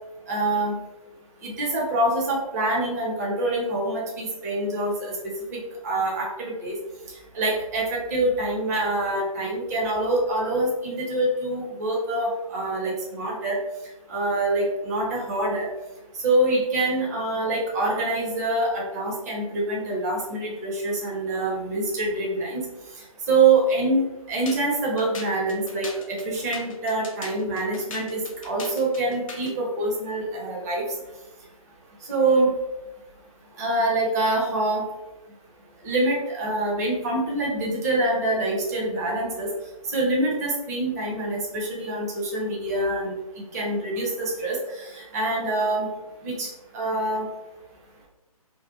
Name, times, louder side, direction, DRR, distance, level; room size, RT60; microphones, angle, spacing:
voice 1, 0.3-0.8 1.4-5.1 5.5-6.8 7.3-13.6 14.1-15.7 16.2-22.6 23.3-30.8 32.1-32.5 33.6-34.8 35.8-39.5 39.9-43.1 43.5-45.9 46.2-46.5 46.7-47.3, right 2 dB, 25° right, -3 dB, 0.6 m, -25 dB
sound 1, 24.5-29.6, left 2 dB, 60° left, 0.6 m, -39 dB
2.6 x 2.1 x 2.5 m, 1.0 s
figure-of-eight pair, 140°, 19 cm